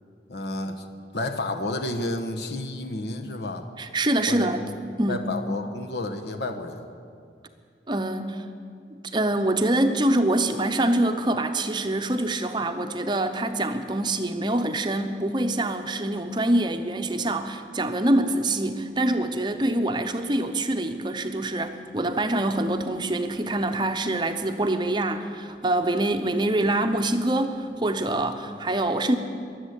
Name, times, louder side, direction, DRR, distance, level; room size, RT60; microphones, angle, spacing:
voice 1, 0.3-0.8 1.1-3.7 4.3-4.5 5.1-6.9, left 2 dB, 70° left, 5 dB, 1.2 m, -31 dB
voice 2, 3.8-4.7 5.0-5.3 7.9-8.5 8.9-29.2, right 1 dB, 25° right, 7 dB, 0.7 m, -25 dB
21.5 x 8.0 x 8.2 m, 2.3 s
head